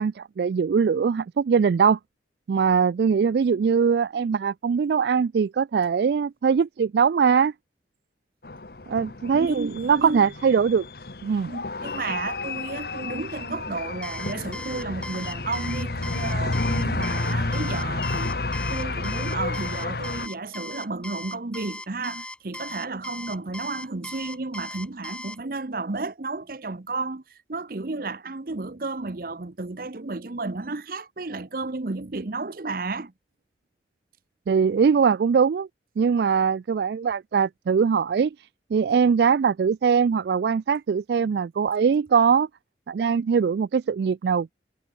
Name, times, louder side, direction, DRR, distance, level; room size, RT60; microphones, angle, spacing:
voice 1, 0.0-2.0 2.5-7.5 8.9-10.9 11.2-11.5 34.5-35.7 36.0-38.3 38.7-42.5 42.9-44.5, right 6 dB, 65° right, 0.3 m, -21 dB
sound 1, 8.4-20.3, left 2 dB, 55° left, 1.2 m, -30 dB
voice 2, 9.3-10.2 11.4-18.3 18.7-27.2 27.5-33.1, right 3 dB, 50° right, 0.8 m, -32 dB
Alarm, 14.0-25.4, left 1 dB, 5° left, 0.8 m, -38 dB
head